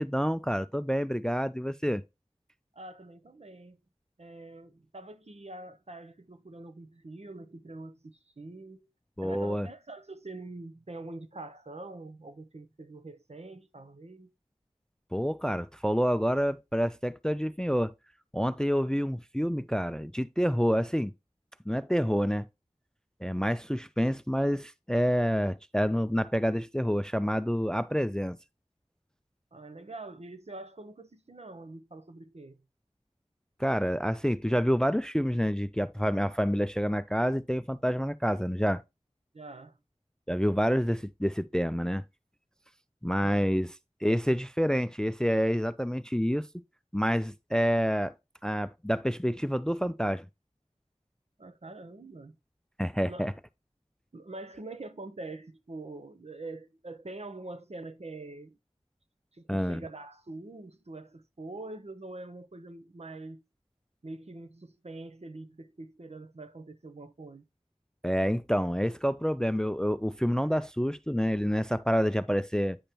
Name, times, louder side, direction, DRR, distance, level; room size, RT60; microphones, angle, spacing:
voice 1, 0.0-2.0 9.2-9.7 15.1-17.9 18.3-21.1 21.7-22.5 23.2-28.4 33.6-38.8 40.3-42.0 43.0-43.7 44.0-46.5 46.9-48.1 48.4-50.3 52.8-53.3 59.5-59.8 68.0-72.8, equal, 5° left, 0.3 m, -28 dB
voice 2, 2.7-3.8 4.2-8.9 9.2-14.3 29.5-32.6 39.3-39.8 51.4-52.3 53.0-53.4 54.1-58.6 59.3-63.4 64.0-67.4, right 2 dB, 65° right, 0.8 m, -44 dB
8.8 x 5.1 x 2.8 m
wide cardioid pair, 40°, 12 cm